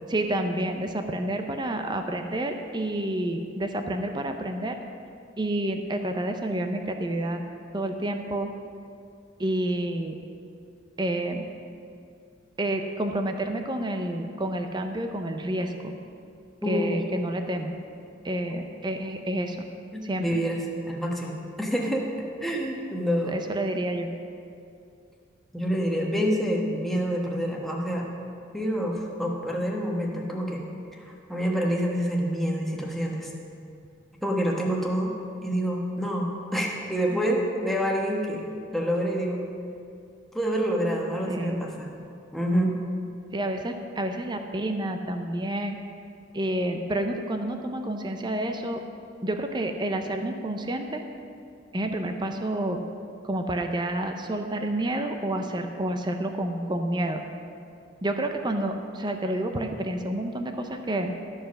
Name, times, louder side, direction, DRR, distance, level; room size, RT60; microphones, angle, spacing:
voice 1, 0.1-4.8 5.4-7.4 7.7-8.5 9.4-10.2 11.0-11.5 12.6-16.0 16.7-17.7 18.2-19.6 20.0-20.4 23.3-24.1 41.3-41.6 43.3-45.8 46.3-48.8 49.2-51.0 51.7-52.8 53.2-57.2 58.0-61.1, right 1 dB, 25° right, 5 dB, 0.6 m, -29 dB
voice 2, 19.9-22.1 22.4-23.4 25.5-28.1 28.5-30.6 30.9-31.0 31.3-33.3 34.2-35.2 35.4-38.4 38.7-39.4 40.3-41.9 42.3-42.7, equal, ahead, -2 dB, 1.2 m, -27 dB
13.5 x 5.0 x 6.2 m, 2.4 s
head